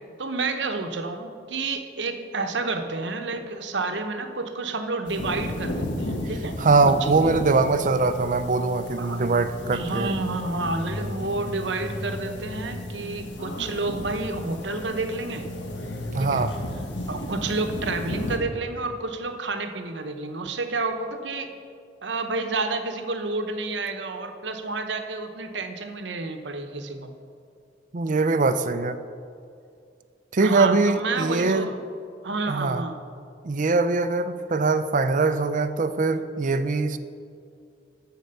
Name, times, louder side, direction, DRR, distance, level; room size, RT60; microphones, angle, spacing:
voice 1, 0.2-6.6 6.8-7.3 9.0-9.3 9.7-15.5 16.2-16.4 17.1-21.5 22.0-27.1 30.4-31.8 32.2-33.0, right 3 dB, 80° right, 6 dB, 0.9 m, -30 dB
sound 1, 5.1-18.4, left 1 dB, 80° left, 1.3 m, -34 dB
voice 2, 6.6-10.1 16.1-16.5 27.9-29.0 30.3-31.7 32.5-32.8 33.4-37.0, right 3 dB, 45° right, 11 dB, 0.5 m, -22 dB
13.5 x 4.6 x 6.8 m, 2.4 s
head